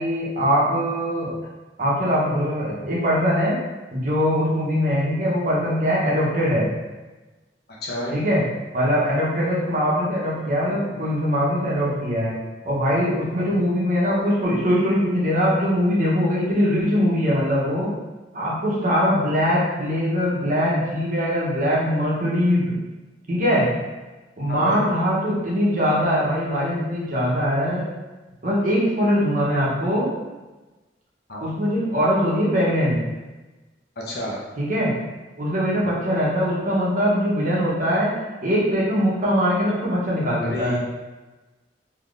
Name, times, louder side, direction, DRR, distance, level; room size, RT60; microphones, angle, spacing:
voice 1, 0.0-1.4 1.8-3.6 3.9-6.7 8.1-8.4 8.7-12.4 12.6-17.9 18.3-22.7 23.3-23.7 24.4-27.9 28.4-30.1 31.4-33.0 34.6-34.9 35.4-38.1 38.4-40.8, equal, 45° right, -5 dB, 0.8 m, -22 dB
voice 2, 7.8-8.1 13.3-13.6 24.5-24.8 31.3-31.5 34.1-34.4 40.4-40.8, left 1 dB, 60° left, -5 dB, 0.8 m, -30 dB
3.6 x 2.8 x 2.5 m, 1.2 s
head